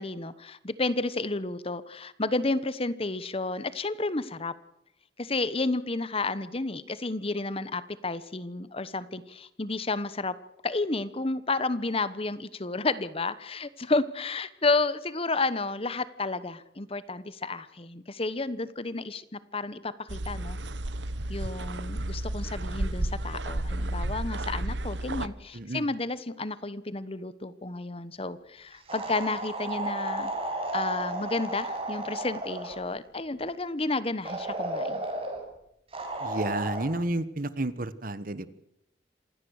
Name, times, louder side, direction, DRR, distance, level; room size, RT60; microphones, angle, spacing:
voice 1, 0.0-4.5 5.2-10.3 10.6-20.6 21.3-30.3 30.7-35.1, left 3 dB, 30° left, 16 dB, 1.1 m, -31 dB
sound 1, 20.1-25.3, right 1 dB, 85° right, 1.1 m, -32 dB
voice 2, 25.5-25.9 36.2-38.5, right 2 dB, 50° right, 15 dB, 1.3 m, -31 dB
sound 2, 28.9-32.9 34.2-35.4 35.9-36.9, right 1 dB, 35° right, 5.3 m, -33 dB
27.0 x 17.5 x 6.6 m, 0.81 s
head